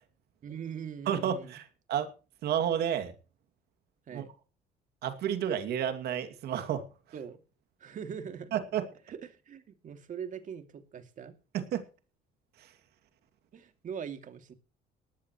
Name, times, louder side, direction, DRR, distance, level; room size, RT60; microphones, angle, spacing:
voice 1, 0.4-1.6 4.1-4.3 7.1-7.4 7.8-8.5 9.1-11.4 13.5-14.5, right 7 dB, 50° right, 2.7 m, -42 dB
voice 2, 1.1-2.1 2.4-3.1 4.1-4.2 5.0-6.8 8.5-8.9 11.5-11.8 12.6-12.7, right 9 dB, 70° right, 2.6 m, -31 dB
19.0 x 13.5 x 3.2 m
cardioid pair, 110°, 17 cm